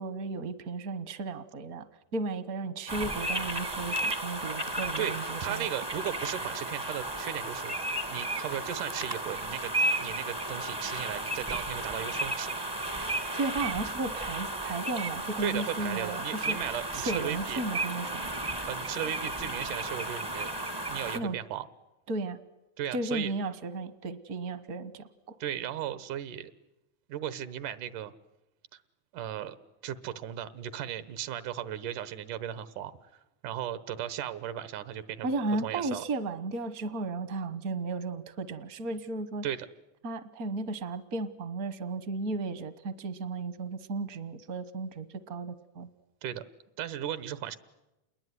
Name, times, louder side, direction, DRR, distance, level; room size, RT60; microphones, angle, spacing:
voice 1, 0.0-1.9 2.1-5.7 13.4-16.6 16.9-18.3 21.1-21.4 22.1-22.4 22.9-25.4 35.2-39.4 40.0-45.9, right 3 dB, 65° right, 13 dB, 0.9 m, -34 dB
sound 1, 2.9-21.2, right 2 dB, 30° right, 0.4 m, -34 dB
voice 2, 5.4-7.7 8.1-9.7 10.0-12.6 15.4-17.6 18.7-20.5 20.9-21.7 22.8-23.3 25.4-26.5 27.1-28.1 29.1-29.6 29.8-32.9 33.4-35.3 35.6-36.0 39.4-39.7 46.2-46.4 46.8-47.6, right 10 dB, 85° right, 14 dB, 2.7 m, -36 dB
28.5 x 21.0 x 9.5 m, 0.98 s
omnidirectional pair, 3.5 m